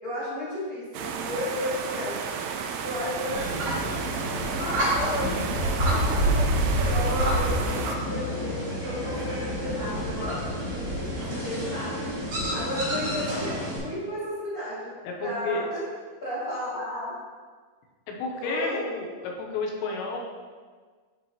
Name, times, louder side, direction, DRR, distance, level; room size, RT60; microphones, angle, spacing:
voice 1, 0.0-2.1 2.8-3.8 4.4-12.0 12.5-14.9 15.2-15.8 16.2-17.1 18.4-18.8, left 1 dB, 55° left, -12 dB, 0.9 m, -33 dB
sound 1, 0.9-8.0, right 6 dB, 85° right, 2.9 m, -33 dB
sound 2, 3.3-13.8, equal, 65° right, 1.3 m, -28 dB
voice 2, 15.0-15.6 18.1-20.3, left 3 dB, 85° left, 0 dB, 3.0 m, -31 dB
11.5 x 3.8 x 2.9 m, 1.5 s
omnidirectional pair, 5.3 m